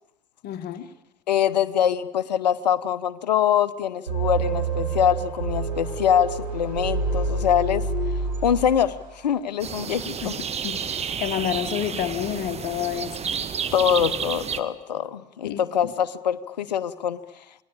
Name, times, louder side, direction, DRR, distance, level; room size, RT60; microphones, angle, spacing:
voice 1, 0.4-0.9 10.2-10.4 10.6-13.4 15.4-15.6, left 10 dB, 50° left, 9 dB, 1.5 m, -29 dB
voice 2, 1.3-7.8 8.4-10.3 13.7-17.2, left 9 dB, 75° left, 14 dB, 1.0 m, -24 dB
sound 1, 4.1-9.1, right 4 dB, 85° right, 6.5 m, -27 dB
sound 2, 9.6-14.6, right 7 dB, 30° right, 1.6 m, -31 dB
28.5 x 19.5 x 8.8 m, 0.93 s
figure-of-eight pair, 65°, 21 cm